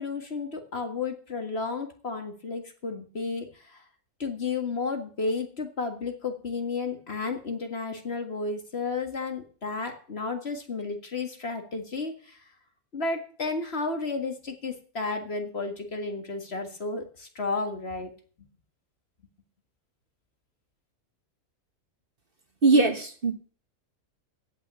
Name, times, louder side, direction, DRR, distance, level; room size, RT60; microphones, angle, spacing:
voice 1, 0.0-3.8 4.2-12.4 12.9-18.1, left 4 dB, 45° left, 5 dB, 2.0 m, -32 dB
voice 2, 22.6-23.3, right 3 dB, 40° right, 7 dB, 1.3 m, -21 dB
17.0 x 5.9 x 8.2 m, 0.43 s
omnidirectional pair, 1.5 m